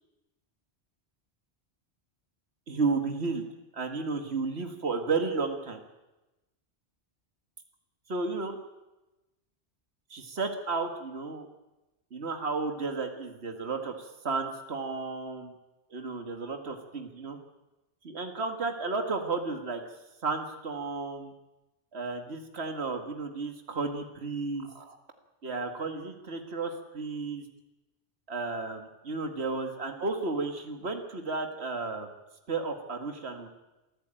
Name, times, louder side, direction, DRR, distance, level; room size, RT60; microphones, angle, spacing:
voice 1, 2.7-3.5 3.7-5.8 8.1-8.6 10.1-11.5 12.1-15.5 15.9-17.4 18.0-19.8 20.2-21.3 21.9-25.0 25.4-27.4 28.3-32.1 32.5-33.5, right 4 dB, 65° right, 5 dB, 2.2 m, -33 dB
26.0 x 14.5 x 9.0 m, 1.0 s
omnidirectional pair, 1.1 m